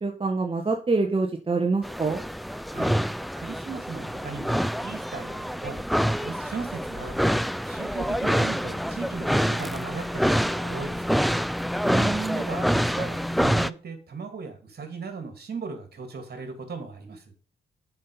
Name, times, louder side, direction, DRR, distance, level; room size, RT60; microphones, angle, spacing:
voice 1, 0.0-2.2 11.8-12.4, right 3 dB, 25° right, 2 dB, 1.4 m, -26 dB
sound 1, 1.8-13.7, equal, ahead, 0.4 m, -26 dB
voice 2, 2.7-3.0 3.4-5.8 6.2-7.2 7.7-11.1 12.3-17.3, right 5 dB, 50° right, 5 dB, 2.8 m, -37 dB
7.3 x 6.0 x 5.7 m, 0.39 s
hypercardioid pair, 45°, 21 cm